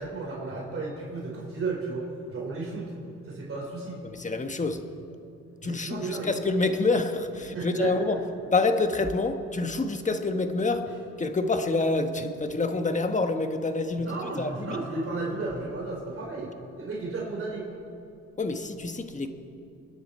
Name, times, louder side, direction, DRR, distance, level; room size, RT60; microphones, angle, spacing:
voice 1, 0.0-2.9 3.2-4.1 5.6-6.3 7.5-7.9 14.0-17.7, right 3 dB, 45° right, -2 dB, 3.9 m, -34 dB
voice 2, 4.0-4.8 5.6-8.2 8.5-10.9 11.2-14.8 18.4-19.3, left 3 dB, 25° left, 6 dB, 1.3 m, -27 dB
29.0 x 10.0 x 4.3 m, 2.6 s
cardioid pair, 90°, 30 cm